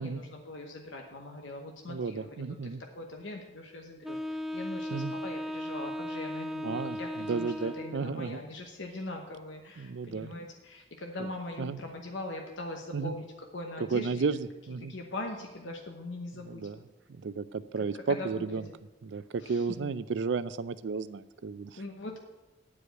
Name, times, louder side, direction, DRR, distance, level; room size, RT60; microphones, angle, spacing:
voice 1, 0.0-13.3 13.5-14.2 14.9-16.7 17.9-18.7 19.4-19.9 21.8-22.2, left 2 dB, 85° left, 2 dB, 1.0 m, -41 dB
voice 2, 1.9-2.8 4.9-5.1 6.6-8.4 9.8-10.3 11.6-11.8 12.9-13.2 13.9-14.9 16.4-16.8 17.1-18.6 19.0-21.8, right 4 dB, 70° right, 15 dB, 0.4 m, -33 dB
Wind instrument woodwind instrument, 4.0-8.2, left 1 dB, ahead, 0.4 m, -37 dB
9.9 x 4.9 x 7.9 m, 1.1 s
head